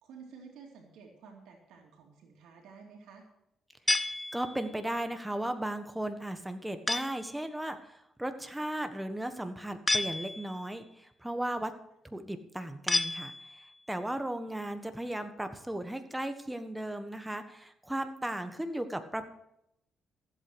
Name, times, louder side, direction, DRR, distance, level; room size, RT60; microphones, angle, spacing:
voice 1, 0.0-3.2 18.3-18.7, right 5 dB, 85° right, 1 dB, 2.6 m, -52 dB
sound 1, 3.9-4.8 6.9-7.4 9.9-10.7 12.9-13.8, left 2 dB, 20° left, 0.6 m, -31 dB
voice 2, 4.3-11.7 12.0-19.3, right 1 dB, 5° right, 8 dB, 1.4 m, -36 dB
15.0 x 8.2 x 6.3 m, 0.79 s
cardioid pair, 90°, 0 cm